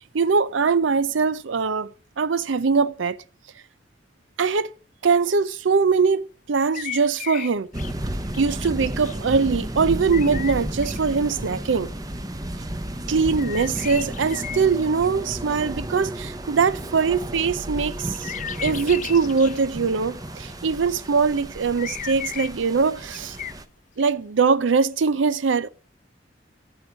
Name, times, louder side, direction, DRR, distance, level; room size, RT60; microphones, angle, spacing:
voice 1, 0.1-1.9 2.2-3.2 4.4-4.7 5.0-7.7 8.4-11.9 13.1-18.3 18.6-23.4 24.0-25.7, right 5 dB, 90° right, 0.5 m, -22 dB
sound 1, 6.7-7.9 8.2-9.2 10.1-11.0 11.3-12.1 13.4-15.2 17.9-19.6 20.1-20.6 21.8-22.5 22.8-23.5 24.0-24.1, left 10 dB, 40° left, 0.4 m, -36 dB
sound 2, 7.7-23.6, right 1 dB, 20° right, 0.7 m, -33 dB
14.0 x 4.8 x 7.2 m
head